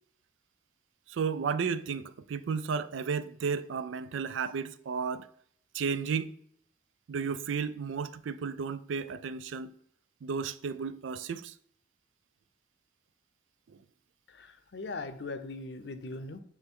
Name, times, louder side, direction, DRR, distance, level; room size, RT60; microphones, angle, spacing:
voice 1, 1.1-5.3 5.7-6.3 7.1-9.7 10.2-11.5 13.7-13.8, right 6 dB, 90° right, 0.4 m, -33 dB
voice 2, 14.3-16.4, left 3 dB, 65° left, 0.6 m, -40 dB
9.0 x 3.3 x 3.6 m
head